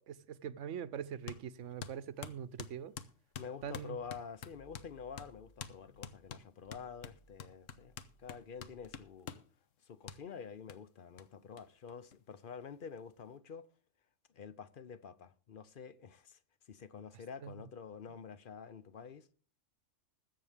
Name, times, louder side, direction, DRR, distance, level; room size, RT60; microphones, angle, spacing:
voice 1, 0.0-2.9 3.6-4.0 17.4-17.5, right 8 dB, 70° right, 1.0 m, -43 dB
sound 1, 1.3-1.4 1.8-4.9 5.2-5.3 5.6-5.8 6.0-9.5 10.1-10.2 10.7-10.8 11.2-11.3 11.6-11.7 11.9-12.6, left 8 dB, 80° left, 1.2 m, -47 dB
voice 2, 3.4-7.9 8.2-9.4 9.8-13.7 14.3-16.4 16.7-19.3, left 6 dB, 50° left, 0.8 m, -48 dB
sound 2, 4.4-6.3 6.6-9.1, right 1 dB, 25° left, 3.8 m, -66 dB
20.5 x 7.8 x 3.4 m
omnidirectional pair, 1.3 m